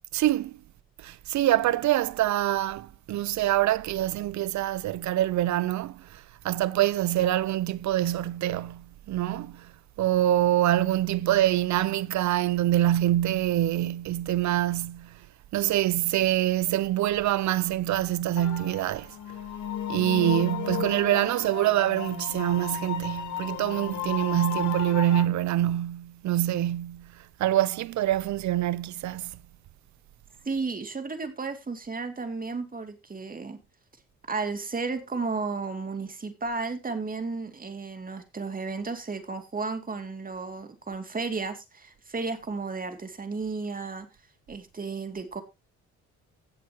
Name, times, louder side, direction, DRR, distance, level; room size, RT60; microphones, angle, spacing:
voice 1, 0.1-0.6 1.0-9.7 10.0-15.2 15.5-19.1 19.9-27.1 27.4-29.3, right 13 dB, 70° right, 0.7 m, -25 dB
sound 1, 18.4-25.2, left 9 dB, 75° left, 2.4 m, -34 dB
voice 2, 30.4-33.6 34.3-44.1 44.5-45.4, right 4 dB, 30° right, 2.5 m, -33 dB
17.0 x 6.7 x 3.0 m
cardioid pair, 90°, 30 cm